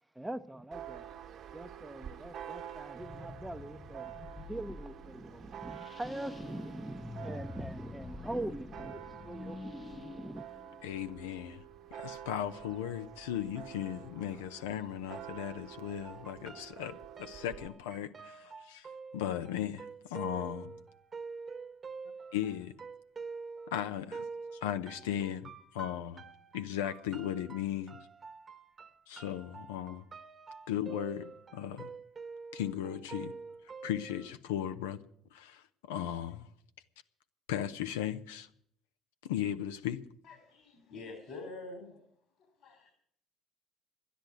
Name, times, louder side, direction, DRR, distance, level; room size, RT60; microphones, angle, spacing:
voice 1, 0.1-1.1 1.5-4.1 4.5-10.4, right 1 dB, 10° right, 0.7 m, -42 dB
Church bell, 0.7-17.7, right 10 dB, 55° right, 1.3 m, -48 dB
sound 1, 3.0-11.6, left 5 dB, 35° left, 0.5 m, -48 dB
voice 2, 10.8-11.6 11.9-18.9 19.1-20.8 22.3-22.8 23.7-24.3 24.5-26.2 26.5-28.0 29.1-30.0 30.7-31.9 32.5-33.3 33.8-35.0 35.3-36.5 37.5-38.5 39.2-40.0, left 10 dB, 85° left, 0.7 m, -37 dB
sound 2, 16.0-34.3, right 4 dB, 35° right, 1.2 m, -47 dB
voice 3, 40.2-42.0 42.6-42.9, left 3 dB, 60° left, 3.1 m, -46 dB
12.0 x 10.5 x 9.3 m
hypercardioid pair, 65°, 0 cm